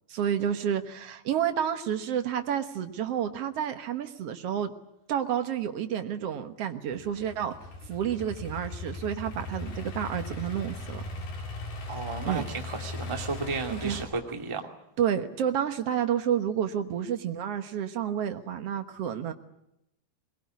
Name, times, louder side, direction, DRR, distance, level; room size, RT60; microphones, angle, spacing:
voice 1, 0.1-4.7 5.1-7.5 7.8-11.0 12.3-12.5 13.7-14.0 15.0-19.3, right 9 dB, 65° right, 7 dB, 1.5 m, -30 dB
Idling / Accelerating revving vroom, 6.9-14.0, left 2 dB, 70° left, 5.9 m, -38 dB
voice 2, 11.9-14.7, right 3 dB, 10° right, 2 dB, 1.5 m, -33 dB
22.5 x 21.5 x 9.5 m, 0.84 s
omnidirectional pair, 4.6 m